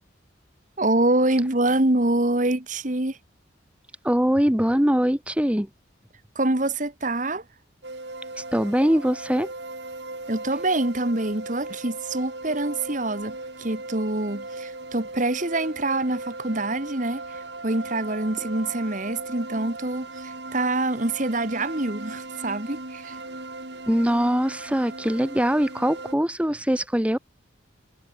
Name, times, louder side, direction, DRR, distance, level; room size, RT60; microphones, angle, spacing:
voice 1, 0.8-3.2 6.3-7.4 10.3-17.2 17.6-23.2, right 2 dB, 40° right, 1.7 m, -25 dB
voice 2, 4.0-5.7 8.4-9.5 23.9-27.2, equal, 5° right, 1.0 m, -22 dB
sound 1, 7.8-26.1, right 2 dB, 60° right, 3.3 m, -38 dB
head